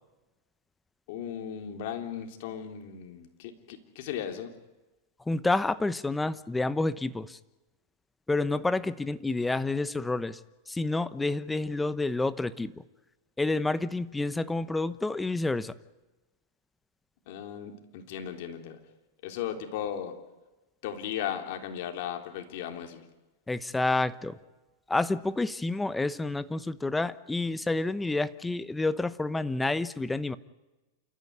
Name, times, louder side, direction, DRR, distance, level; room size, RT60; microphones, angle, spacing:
voice 1, 1.1-4.5 17.3-18.8 19.2-20.1 20.8-23.1, left 9 dB, 60° left, 4 dB, 3.5 m, -36 dB
voice 2, 5.3-7.4 8.3-10.4 10.7-12.7 13.4-15.7 23.5-24.4 24.9-30.4, left 2 dB, 10° left, 15 dB, 0.8 m, -29 dB
29.0 x 13.5 x 9.6 m, 1.1 s
supercardioid pair, 135°, 0 cm